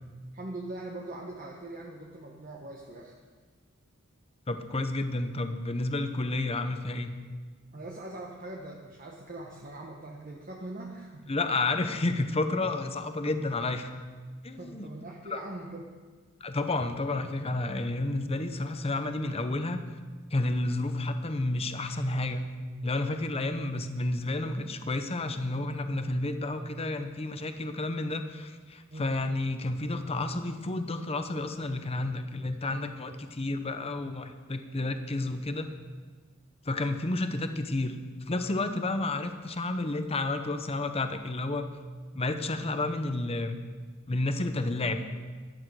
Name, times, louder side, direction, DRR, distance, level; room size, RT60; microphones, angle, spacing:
voice 1, 0.3-3.2 7.7-11.2 14.5-15.9 28.9-29.1 35.2-35.3, right 2 dB, 40° right, -1 dB, 1.2 m, -41 dB
voice 2, 4.5-7.1 11.3-13.9 14.4-14.9 15.3-15.4 16.4-19.8 20.3-22.5 22.8-35.7 36.6-38.0 38.3-41.7 42.1-43.6 44.1-45.0, left 2 dB, 30° left, 8 dB, 0.8 m, -31 dB
13.5 x 11.5 x 4.8 m, 1.5 s
head